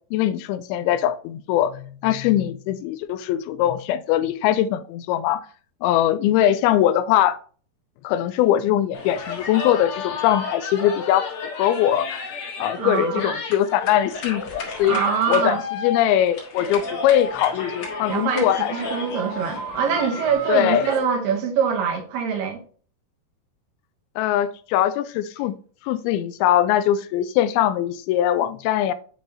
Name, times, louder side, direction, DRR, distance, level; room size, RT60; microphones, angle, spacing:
voice 1, 0.1-5.5 5.8-7.4 8.0-11.3 11.5-15.0 15.3-18.7 20.5-20.9 24.2-25.5 25.8-28.9, left 11 dB, 85° left, 2.4 m, -21 dB
sound 1, 8.9-21.0, left 3 dB, 55° left, 1.7 m, -32 dB
voice 2, 12.8-13.3 14.8-15.6 18.1-22.6, right 7 dB, 75° right, 2.2 m, -24 dB
7.6 x 4.5 x 2.7 m
omnidirectional pair, 4.5 m